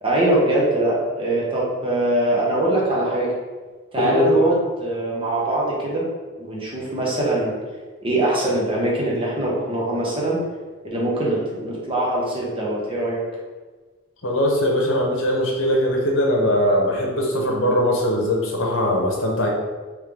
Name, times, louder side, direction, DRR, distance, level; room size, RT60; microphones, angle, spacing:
voice 1, 0.0-3.3 3.9-6.1 6.4-7.6 8.0-10.4 10.8-13.2, right 1 dB, 25° right, -5 dB, 1.0 m, -22 dB
voice 2, 4.0-4.4 14.2-19.5, left 1 dB, 65° left, -1 dB, 0.9 m, -20 dB
3.6 x 3.3 x 3.4 m, 1.3 s
head